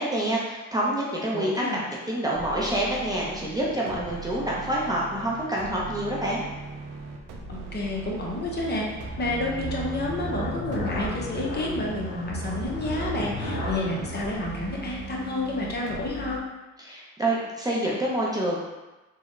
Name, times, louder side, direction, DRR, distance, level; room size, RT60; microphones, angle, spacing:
voice 1, 0.0-1.6 2.1-6.4 16.8-18.6, right 1 dB, 15° right, -5 dB, 0.5 m, -27 dB
voice 2, 1.3-1.8 7.5-8.9 9.2-16.4, left 2 dB, 35° left, -2 dB, 0.7 m, -30 dB
sound 1, 2.3-16.4, right 3 dB, 80° right, 0.6 m, -40 dB
sound 2, 7.0-15.8, equal, 65° left, 1.3 m, -36 dB
3.6 x 2.1 x 3.1 m, 1.1 s
cardioid pair, 90°, 30 cm